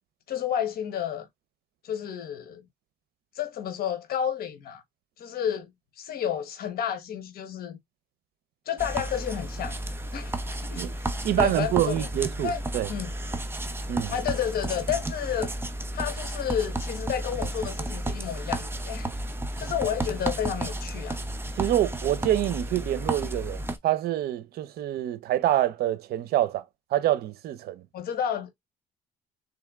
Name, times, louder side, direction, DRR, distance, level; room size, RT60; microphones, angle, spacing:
voice 1, 0.3-1.3 1.8-2.6 3.3-4.8 5.2-5.7 6.0-7.8 8.7-9.8 10.1-11.1 11.4-12.1 12.4-12.6 12.9-13.1 14.1-15.5 15.9-19.1 19.6-21.2 27.9-28.5, left 9 dB, 65° left, 1.2 m, -31 dB
sound 1, 8.8-23.8, right 1 dB, 15° right, 0.7 m, -32 dB
voice 2, 11.2-12.9 13.9-14.1 21.6-26.6 26.9-27.8, right 12 dB, 65° right, 0.7 m, -26 dB
3.9 x 3.5 x 3.6 m
cardioid pair, 110°, 17 cm